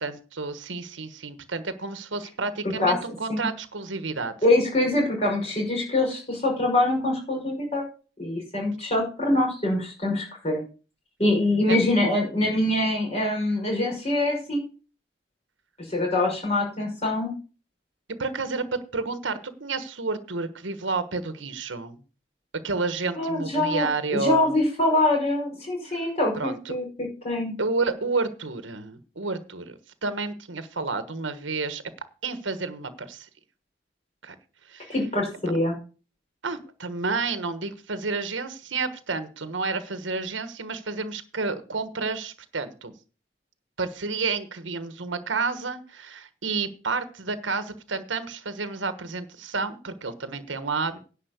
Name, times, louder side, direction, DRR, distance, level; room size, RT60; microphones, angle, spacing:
voice 1, 0.0-4.3 11.7-11.8 18.2-22.0 22.6-24.5 26.4-26.7 27.6-31.8 32.2-33.3 34.2-34.3 34.7-34.9 36.4-42.9 43.8-51.0, right 4 dB, 90° right, 11 dB, 1.3 m, -30 dB
voice 2, 4.4-7.8 8.2-10.6 11.2-14.6 15.9-17.3 23.2-27.6 34.9-35.8, left 1 dB, 35° left, -1 dB, 5.7 m, -24 dB
10.5 x 5.4 x 8.1 m, 0.36 s
head